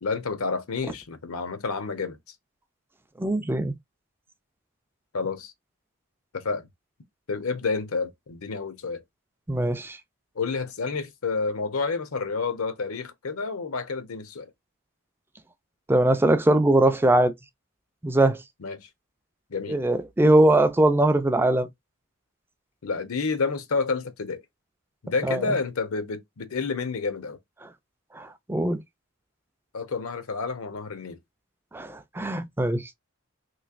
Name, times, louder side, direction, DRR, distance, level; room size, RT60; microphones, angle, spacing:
voice 1, 0.0-2.2 5.1-5.5 6.3-6.7 7.3-9.0 10.4-14.5 18.6-18.9 19.5-19.8 22.8-24.4 25.0-27.4 29.7-31.2, left 4 dB, 75° left, 0.7 m, -29 dB
voice 2, 3.2-3.8 9.5-10.0 15.9-17.3 18.0-18.4 19.7-21.7 25.2-25.4 27.6-27.7 28.1-28.8 31.7-32.9, right 1 dB, 10° right, 0.3 m, -21 dB
3.1 x 3.0 x 2.4 m
head